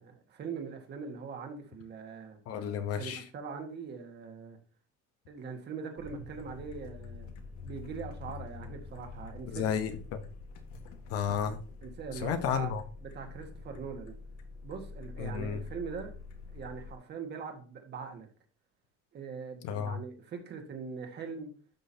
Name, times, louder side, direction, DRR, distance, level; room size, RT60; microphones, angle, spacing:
voice 1, 0.0-2.4 3.0-4.6 5.3-7.3 7.6-9.9 11.8-12.7 13.0-14.1 14.6-16.1 16.5-18.3 19.1-21.5, right 5 dB, 35° right, 1.7 m, -42 dB
voice 2, 2.5-3.2 9.5-10.2 11.1-11.6 12.1-12.8 15.2-15.6 19.6-20.0, left 8 dB, 50° left, 1.1 m, -32 dB
sound 1, 6.0-16.9, left 4 dB, 70° left, 1.7 m, -46 dB
12.0 x 6.2 x 2.9 m
cardioid pair, 170°, 30 cm